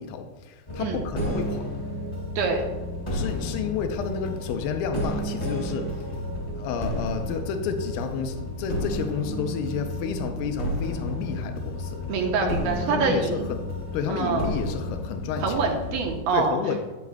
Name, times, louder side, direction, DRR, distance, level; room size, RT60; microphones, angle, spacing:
voice 1, 0.0-1.6 3.1-5.9 6.5-12.0 12.4-12.6 12.9-13.6 13.9-15.6 16.3-16.8, left 6 dB, 80° left, 7 dB, 2.2 m, -31 dB
sound 1, 0.7-16.2, left 1 dB, 15° left, 1.9 m, -32 dB
voice 2, 12.1-13.4 14.1-14.5 15.4-16.6, right 5 dB, 80° right, 2 dB, 2.4 m, -25 dB
9.1 x 8.3 x 2.3 m, 1.2 s
omnidirectional pair, 4.6 m